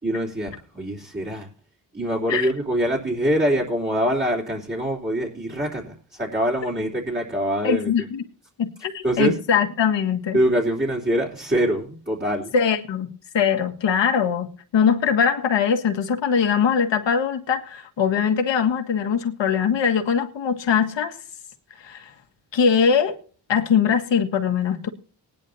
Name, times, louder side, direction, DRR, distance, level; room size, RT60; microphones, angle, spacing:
voice 1, 0.0-1.5 1.9-7.9 9.0-9.4 10.3-12.5, equal, 25° right, 3.5 m, -24 dB
voice 2, 7.6-8.2 8.6-10.4 12.5-13.1 13.3-21.2 21.8-22.1 22.5-23.2 23.5-24.9, left 7 dB, 75° left, 1.8 m, -21 dB
19.0 x 10.5 x 2.8 m
cardioid pair, 90°, 44 cm